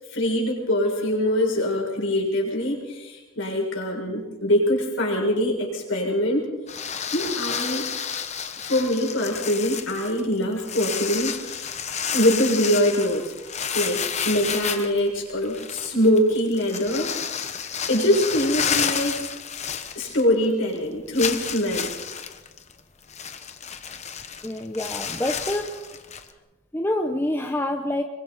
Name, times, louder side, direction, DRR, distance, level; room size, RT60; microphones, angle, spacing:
voice 1, 0.1-6.5 7.1-7.9 8.6-11.8 12.1-17.5 17.9-19.1 19.9-21.9, left 1 dB, 60° left, -2 dB, 6.8 m, -23 dB
sound 1, 6.7-20.5 20.7-20.8 21.2-26.3, left 7 dB, 30° left, 1.1 m, -31 dB
voice 2, 24.4-25.7 26.7-28.0, left 1 dB, 10° left, 4 dB, 0.8 m, -26 dB
27.0 x 23.5 x 4.2 m, 1.2 s
head